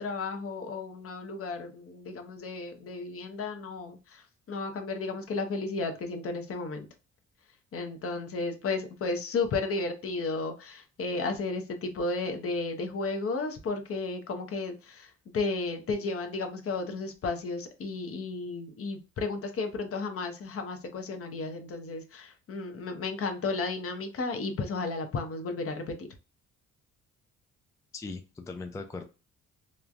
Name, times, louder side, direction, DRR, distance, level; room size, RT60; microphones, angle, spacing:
voice 1, 0.0-6.9 7.7-26.1, left 3 dB, 50° left, 0.7 m, -33 dB
voice 2, 27.9-29.0, left 3 dB, 10° left, 0.3 m, -39 dB
3.1 x 2.2 x 2.5 m
cardioid pair, 90°, 30 cm